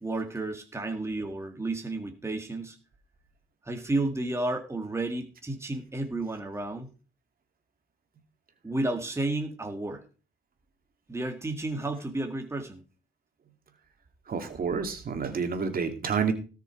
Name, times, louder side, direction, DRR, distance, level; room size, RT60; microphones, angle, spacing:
voice 1, 0.0-2.8 3.6-6.9 8.6-10.0 11.1-12.8, right 2 dB, 15° right, 3 dB, 2.0 m, -32 dB
voice 2, 14.3-16.3, right 6 dB, 45° right, 6 dB, 2.5 m, -29 dB
17.5 x 6.5 x 4.6 m, 0.36 s
cardioid pair, 90°, 20 cm